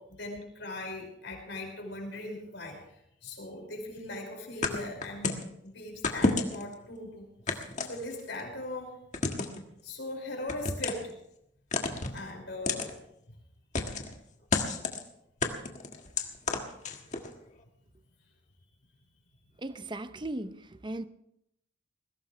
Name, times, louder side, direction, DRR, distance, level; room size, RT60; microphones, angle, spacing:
voice 1, 0.0-2.8 3.2-5.3 5.6-9.0 9.8-11.1 12.1-12.9, left 2 dB, 65° left, 5.5 m, -40 dB
sound 1, 4.6-5.5 6.0-6.7 7.5-8.4 9.1-9.6 10.5-11.1 11.7-12.2 12.7-12.9 13.7-14.1 14.5-15.0 15.4-17.3, left 3 dB, 40° left, 1.6 m, -30 dB
voice 2, 19.6-21.0, right 1 dB, 25° right, 0.6 m, -37 dB
21.0 x 17.0 x 3.3 m
head